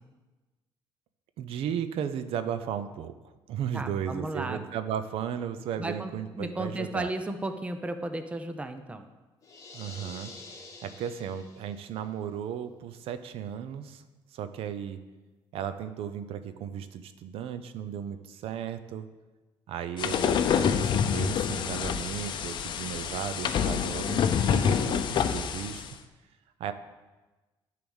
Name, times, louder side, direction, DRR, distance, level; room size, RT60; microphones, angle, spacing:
voice 1, 1.4-7.1 9.7-10.3 10.8-14.0 14.3-15.0 15.5-19.1 19.7-25.8 26.6-26.7, right 9 dB, 75° right, 11 dB, 0.6 m, -35 dB
voice 2, 3.7-4.6 5.8-6.1 6.4-9.0, right 2 dB, 15° right, 8 dB, 0.6 m, -34 dB
sound 1, 9.4-11.9, left 3 dB, 35° left, 1.7 m, -47 dB
sound 2, 20.0-25.9, left 7 dB, 55° left, 0.7 m, -27 dB
10.5 x 4.8 x 7.1 m, 1.2 s
cardioid pair, 130°, 10 cm